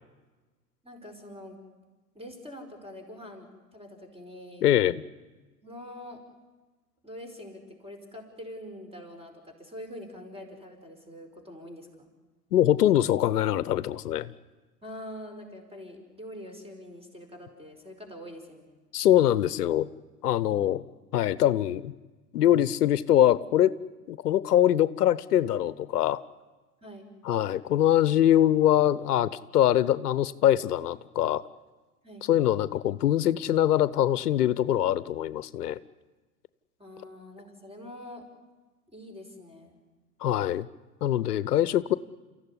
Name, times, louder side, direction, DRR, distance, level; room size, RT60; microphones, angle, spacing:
voice 1, 0.8-1.6 2.1-4.7 5.6-6.2 7.0-12.1 14.8-18.7 26.8-27.1 32.0-32.3 36.8-38.2 38.9-39.8, left 1 dB, 10° right, 5 dB, 5.1 m, -44 dB
voice 2, 4.6-5.0 12.5-14.3 18.9-19.9 20.2-20.8 21.1-21.9 22.3-23.7 24.1-26.2 27.2-31.4 32.3-35.8 40.2-40.7 41.0-41.9, left 11 dB, 75° left, 17 dB, 0.8 m, -23 dB
28.0 x 15.0 x 9.9 m, 1.3 s
hypercardioid pair, 90°, 48 cm